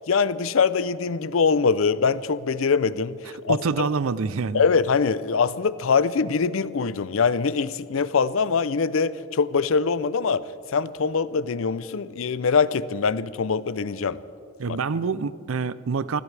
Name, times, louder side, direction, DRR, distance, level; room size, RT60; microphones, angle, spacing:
voice 1, 0.1-3.9 4.5-10.4 10.7-14.2 14.7-14.8, left 5 dB, 75° left, 0.5 m, -23 dB
voice 2, 3.5-4.6 14.6-16.2, right 5 dB, 80° right, 0.5 m, -26 dB
25.0 x 16.0 x 3.4 m
head